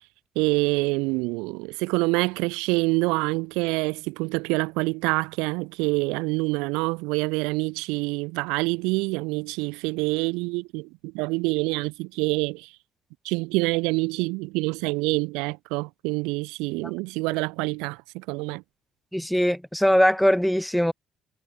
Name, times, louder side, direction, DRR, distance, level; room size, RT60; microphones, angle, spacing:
voice 1, 0.3-12.7 13.2-18.6, right 27 dB, 85° right, 0.9 m, -26 dB
voice 2, 19.1-20.9, equal, ahead, 1.2 m, -21 dB
supercardioid pair, 80°, 0 cm